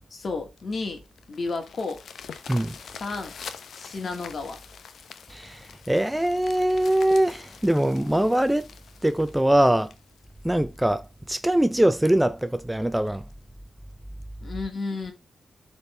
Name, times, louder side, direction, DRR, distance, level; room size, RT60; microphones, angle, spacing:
voice 1, 0.1-1.0 1.3-2.0 3.0-3.3 3.7-4.6 14.4-15.1, left 3 dB, 50° left, 2.0 m, -32 dB
sound 1, 0.6-11.1 11.6-11.7 12.2-12.3 12.6-12.7 13.1-13.3 14.2-14.3, left 6 dB, 75° left, 0.8 m, -45 dB
voice 2, 5.3-8.7 9.0-9.9 10.4-13.2, right 1 dB, 5° right, 0.4 m, -22 dB
12.0 x 4.2 x 3.3 m
cardioid pair, 110°, 0 cm